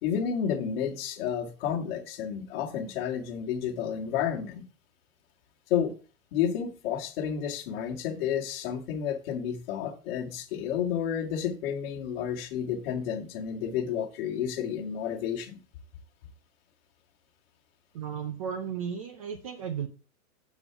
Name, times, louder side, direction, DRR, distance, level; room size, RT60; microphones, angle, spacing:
voice 1, 0.0-4.6 5.7-5.9 6.3-15.6, left 8 dB, 40° left, 1.8 m, -31 dB
voice 2, 17.9-19.9, right 7 dB, 25° right, 0.4 m, -34 dB
7.2 x 6.8 x 3.4 m
hypercardioid pair, 155°, 43 cm